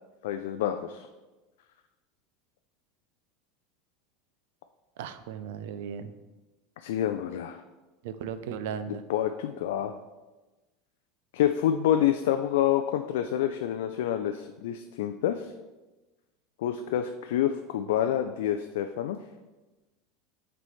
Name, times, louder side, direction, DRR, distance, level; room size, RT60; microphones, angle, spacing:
voice 1, 0.2-1.1 6.8-7.6 9.1-10.0 11.3-15.5 16.6-19.2, left 10 dB, 75° left, 7 dB, 0.3 m, -27 dB
voice 2, 5.0-6.1 8.0-9.0, right 8 dB, 75° right, 11 dB, 0.4 m, -36 dB
7.5 x 4.0 x 3.2 m, 1.1 s
hypercardioid pair, 95°, 0 cm